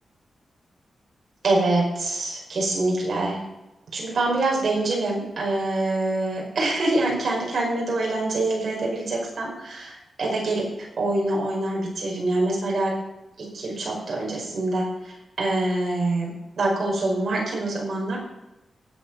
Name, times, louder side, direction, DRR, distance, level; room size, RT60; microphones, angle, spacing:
voice 1, 1.4-3.4 3.9-10.7 11.0-12.9 13.5-18.2, right 2 dB, 50° right, -3 dB, 5.4 m, -25 dB
19.0 x 7.9 x 5.6 m, 0.96 s
wide cardioid pair, 170°, 0 cm